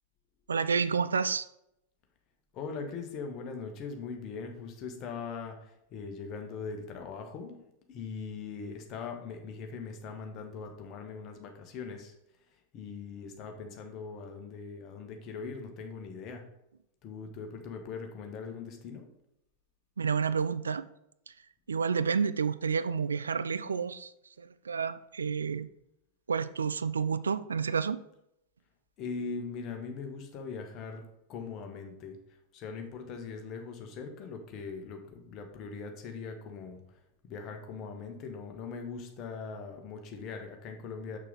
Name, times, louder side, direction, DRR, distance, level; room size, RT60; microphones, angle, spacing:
voice 1, 0.5-1.5 20.0-20.9 21.7-24.1 24.4-25.7 26.3-28.0, right 6 dB, 70° right, 0.3 m, -30 dB
voice 2, 2.5-7.6 7.9-12.1 12.7-16.4 17.0-19.1 29.0-32.2 32.5-41.2, left 5 dB, 35° left, 1.3 m, -41 dB
6.5 x 6.3 x 4.0 m
figure-of-eight pair, 90°, 0 cm